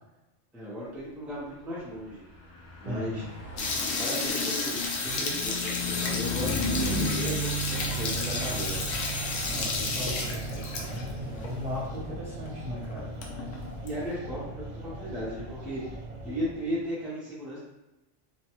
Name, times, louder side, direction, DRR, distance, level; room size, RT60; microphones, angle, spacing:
voice 1, 0.5-2.2 2.8-3.2 3.5-8.8 13.8-15.8 16.2-17.6, equal, ahead, -8 dB, 0.5 m, -36 dB
Car passing by / Truck, 2.3-16.0, right 1 dB, 65° left, 1.3 m, -36 dB
voice 2, 2.8-3.2 9.5-13.1, left 1 dB, 40° right, -10 dB, 0.9 m, -37 dB
sound 1, 3.6-11.1 11.4-11.5 11.8-11.9 12.5-12.6 12.8-13.9, left 3 dB, 85° left, 0.9 m, -32 dB
sound 2, 7.7-16.9, right 1 dB, 65° right, 0.4 m, -40 dB
2.7 x 2.2 x 2.9 m, 1.0 s
omnidirectional pair, 1.3 m